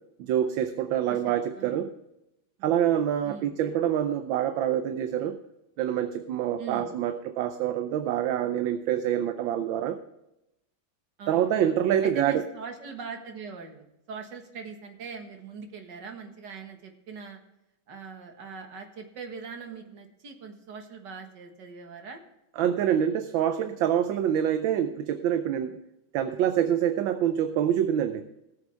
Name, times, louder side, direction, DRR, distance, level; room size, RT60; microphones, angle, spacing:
voice 1, 0.2-1.9 2.6-5.4 5.8-10.0 11.3-12.4 22.6-25.8 26.1-28.2, right 10 dB, 75° right, 9 dB, 1.4 m, -26 dB
voice 2, 1.0-1.9 2.6-2.8 3.2-3.5 6.6-6.9 11.2-11.6 12.0-17.4 17.9-22.2, right 5 dB, 55° right, 4 dB, 2.2 m, -41 dB
18.5 x 7.3 x 3.4 m, 0.89 s
omnidirectional pair, 2.2 m